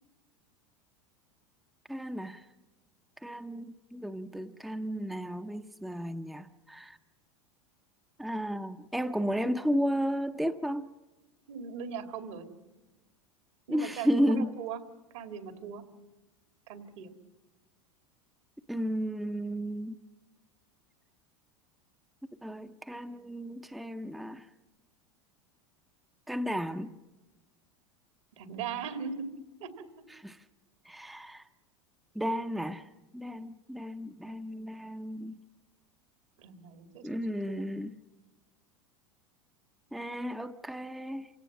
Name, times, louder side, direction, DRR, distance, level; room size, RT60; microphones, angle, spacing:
voice 1, 1.9-2.4 3.2-7.0 8.2-10.9 13.7-14.5 18.7-20.0 22.4-24.4 26.3-26.9 30.2-30.4 30.9-31.4 32.1-32.8 33.1-35.3 37.0-37.9 39.9-41.3, equal, ahead, 0.7 m, -33 dB
voice 2, 11.5-12.5 13.7-14.8 15.1-15.8 16.7-17.1 28.4-29.3 29.6-29.9 36.4-37.7, right 6 dB, 70° right, 2.4 m, -39 dB
28.0 x 17.5 x 6.1 m
hypercardioid pair, 95°, 16 cm